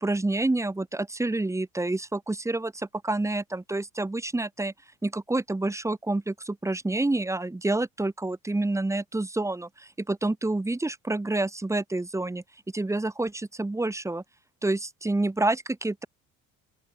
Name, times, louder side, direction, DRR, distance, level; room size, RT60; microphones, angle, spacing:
voice 1, 0.0-4.7 5.0-12.4 12.7-14.2 14.6-16.1, right 2 dB, 5° right, 0.9 m, -28 dB
open air
hypercardioid pair, 65°, 41 cm